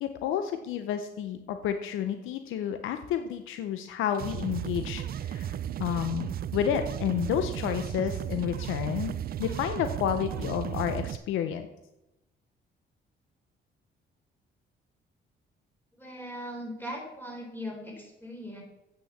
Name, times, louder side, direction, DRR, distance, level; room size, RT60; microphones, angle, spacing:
voice 1, 0.0-5.5 5.8-9.1 9.4-11.7, left 9 dB, 85° left, 8 dB, 0.7 m, -30 dB
sound 1, 4.1-11.2, right 10 dB, 50° right, 0.4 m, -34 dB
voice 2, 16.0-18.6, equal, 10° left, 0 dB, 3.8 m, -39 dB
8.5 x 6.3 x 7.1 m, 0.91 s
cardioid pair, 90°, 20 cm